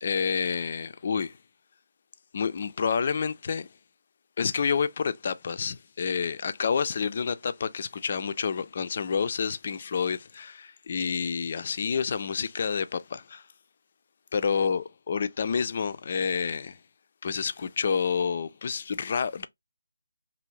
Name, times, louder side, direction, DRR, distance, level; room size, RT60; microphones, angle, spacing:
voice 1, 0.0-1.4 2.3-3.7 4.4-13.4 14.3-16.8 17.2-19.5, left 6 dB, 40° left, 0.3 m, -29 dB
2.7 x 2.5 x 3.0 m
figure-of-eight pair, 160°, 0 cm